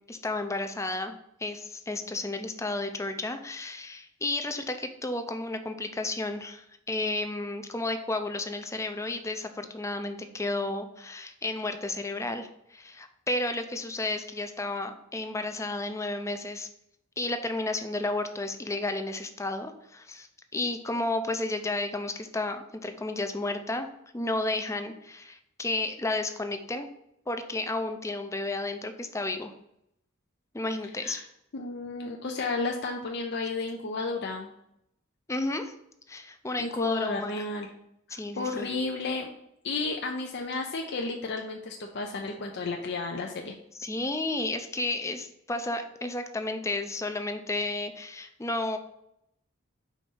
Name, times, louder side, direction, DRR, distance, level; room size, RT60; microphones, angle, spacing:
voice 1, 0.1-16.7 17.2-23.9 24.1-26.9 27.3-29.5 30.5-31.2 35.3-35.7 36.1-37.4 38.1-38.7 43.8-48.8, left 2 dB, 15° left, 8 dB, 0.5 m, -32 dB
voice 2, 31.5-34.5 36.6-37.7 38.1-39.3 39.6-43.6, left 3 dB, 55° left, 2 dB, 0.6 m, -32 dB
5.0 x 4.0 x 5.4 m, 0.77 s
head